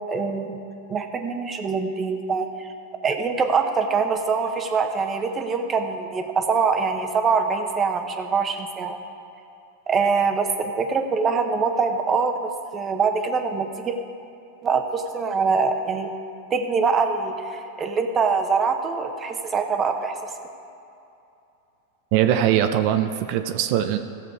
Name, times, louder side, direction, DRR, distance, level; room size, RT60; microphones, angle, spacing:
voice 1, 0.1-0.6 0.9-2.7 3.0-9.0 9.9-13.9 14.6-16.1 16.5-20.2, right 5 dB, 25° right, 5 dB, 1.0 m, -24 dB
voice 2, 22.1-24.0, right 11 dB, 55° right, 8 dB, 0.6 m, -21 dB
15.5 x 6.7 x 4.7 m, 2.7 s
hypercardioid pair, 115°, 0 cm